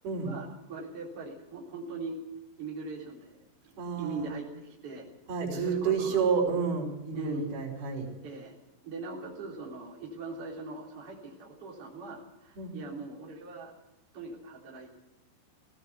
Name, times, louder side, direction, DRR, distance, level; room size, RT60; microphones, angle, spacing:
voice 1, 0.2-2.2 2.6-3.4 3.6-5.1 5.5-6.4 7.1-7.6 8.2-8.5 8.8-13.7 14.1-15.0, right 3 dB, 35° right, -4 dB, 4.2 m, -40 dB
voice 2, 3.8-4.3 5.3-8.1 12.6-12.8, right 6 dB, 60° right, -1 dB, 7.0 m, -30 dB
19.0 x 17.0 x 8.2 m, 0.95 s
omnidirectional pair, 5.1 m